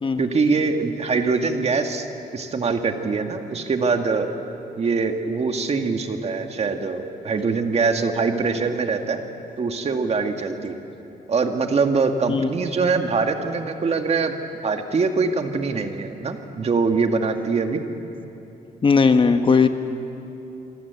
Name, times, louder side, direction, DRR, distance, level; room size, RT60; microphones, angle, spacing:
voice 1, 0.2-2.1 2.3-4.3 4.8-9.2 9.6-10.8 11.3-14.4 14.6-17.8, right 4 dB, 40° right, 5 dB, 2.0 m, -23 dB
voice 2, 18.8-19.7, left 5 dB, 35° left, 8 dB, 1.2 m, -17 dB
27.5 x 24.5 x 8.3 m, 3.0 s
cardioid pair, 135°, 16 cm